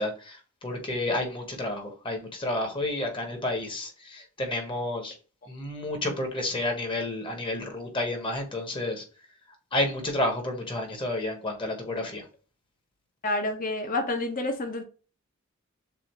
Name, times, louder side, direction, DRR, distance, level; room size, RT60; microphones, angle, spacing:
voice 1, 0.0-5.1 5.5-9.0 9.7-12.2, left 1 dB, 25° left, 1.3 m, -30 dB
voice 2, 13.2-14.8, left 2 dB, 40° left, 1.0 m, -28 dB
6.8 x 2.5 x 3.1 m
head